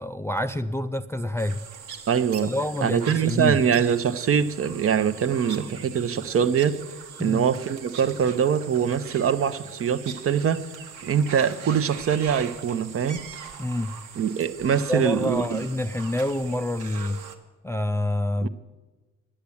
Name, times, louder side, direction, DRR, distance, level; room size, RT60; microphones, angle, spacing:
voice 1, 0.0-1.6 2.4-3.6 7.2-7.4 13.6-14.0 14.9-17.2 17.6-18.5, left 1 dB, 10° left, 0.3 m, -27 dB
sound 1, 1.4-17.3, right 6 dB, 80° right, 1.3 m, -42 dB
voice 2, 2.1-2.5 2.8-6.8 7.2-10.6 11.0-13.2 14.2-15.6 18.4-18.5, right 7 dB, 50° right, 0.7 m, -23 dB
10.0 x 8.5 x 8.5 m
cardioid pair, 90°, 30 cm